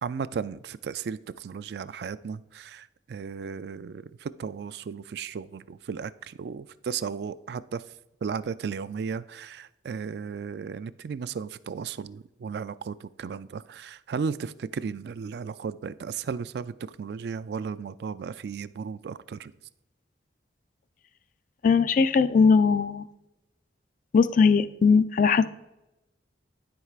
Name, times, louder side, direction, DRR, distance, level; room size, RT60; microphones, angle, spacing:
voice 1, 0.0-7.8 8.2-19.5, right 6 dB, 60° right, 15 dB, 0.3 m, -35 dB
voice 2, 21.6-23.1 24.1-25.5, left 5 dB, 45° left, 13 dB, 0.3 m, -20 dB
13.0 x 4.6 x 2.4 m, 0.94 s
head